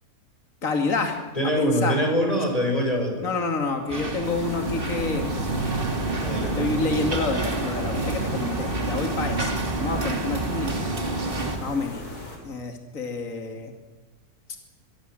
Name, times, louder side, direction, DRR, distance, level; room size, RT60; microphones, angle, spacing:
voice 1, 0.6-1.2 1.6-2.0 3.2-5.3 6.4-10.7 11.6-12.0 12.4-13.7, left 3 dB, 60° left, 4 dB, 2.9 m, -28 dB
voice 2, 1.3-3.3 6.2-6.7, equal, 25° left, 2 dB, 6.0 m, -24 dB
sound 1, 3.9-11.6, right 2 dB, 35° right, 2.6 m, -28 dB
sound 2, 4.2-12.4, left 1 dB, 80° left, 5.8 m, -39 dB
25.0 x 22.5 x 7.8 m, 1.2 s
omnidirectional pair, 1.6 m